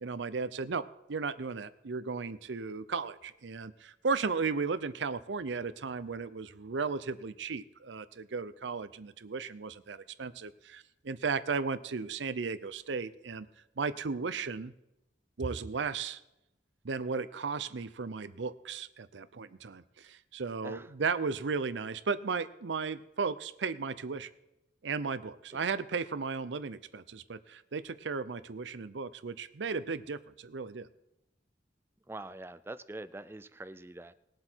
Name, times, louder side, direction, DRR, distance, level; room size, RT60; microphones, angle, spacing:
voice 1, 0.0-13.5 13.8-14.7 15.4-16.2 16.8-24.3 24.8-30.9, right 4 dB, 85° right, 15 dB, 0.6 m, -35 dB
voice 2, 20.6-20.9 25.5-25.6 32.1-34.1, right 2 dB, 15° right, 14 dB, 0.4 m, -44 dB
20.0 x 7.7 x 4.5 m, 0.91 s
head